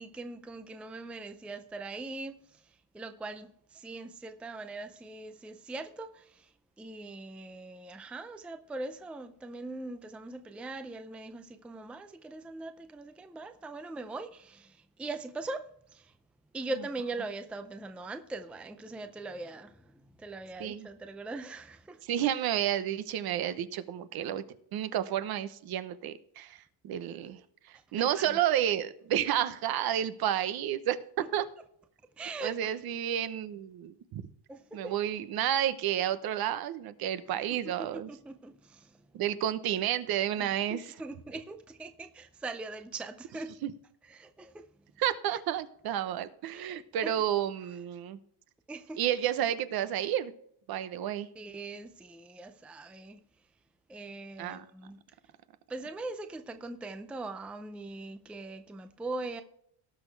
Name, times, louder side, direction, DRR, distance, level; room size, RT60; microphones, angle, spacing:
voice 1, 0.0-6.5 6.8-15.6 15.9-16.1 16.5-22.0 27.9-28.4 32.2-32.6 34.5-35.0 37.8-39.0 40.4-43.5 44.1-44.6 45.3-45.4 46.5-47.1 48.7-49.0 51.4-53.2 53.9-55.0 55.7-59.4, right 2 dB, 5° right, 0.5 m, -41 dB
voice 2, 22.0-24.4 24.7-27.4 27.6-31.4 32.4-34.3 34.7-38.1 39.1-41.0 43.6-43.7 45.0-48.2 49.0-50.3 50.7-51.3 54.4-54.6, right 11 dB, 55° right, 1.0 m, -31 dB
18.0 x 6.4 x 3.3 m
cardioid pair, 155°, 44 cm